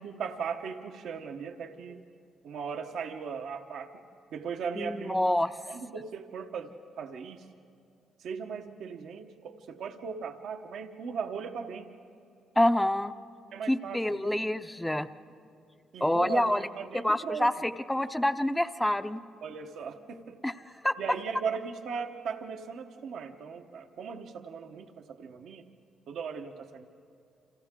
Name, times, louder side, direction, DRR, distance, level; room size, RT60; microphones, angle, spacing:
voice 1, 0.0-2.0 2.4-3.9 4.3-5.3 5.7-7.4 8.2-11.9 13.5-14.4 15.9-17.5 19.4-20.4 21.0-25.6 26.1-26.9, right 6 dB, 75° right, 6 dB, 1.1 m, -38 dB
voice 2, 4.8-5.5 12.6-13.1 13.7-15.1 16.0-16.6 17.0-19.2 20.4-20.5 20.8-20.9, left 1 dB, 5° left, 10 dB, 0.6 m, -27 dB
29.5 x 26.5 x 3.7 m, 2.5 s
cardioid pair, 90°, 0 cm